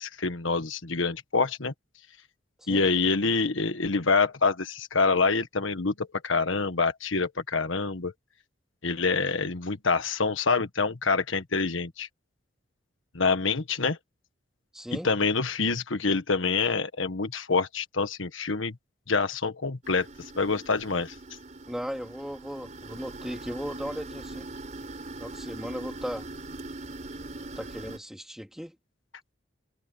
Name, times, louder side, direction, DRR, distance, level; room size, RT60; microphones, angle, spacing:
voice 1, 0.0-1.7 2.7-8.1 8.8-12.1 13.1-14.0 14.9-18.8 19.1-20.1 20.3-21.1, left 4 dB, 80° left, 1.5 m, -26 dB
voice 2, 14.7-15.1 21.7-24.5 25.2-26.2 27.5-28.7, equal, ahead, 3.2 m, -37 dB
sound 1, 19.8-28.0, right 2 dB, 35° right, 5.1 m, -41 dB
head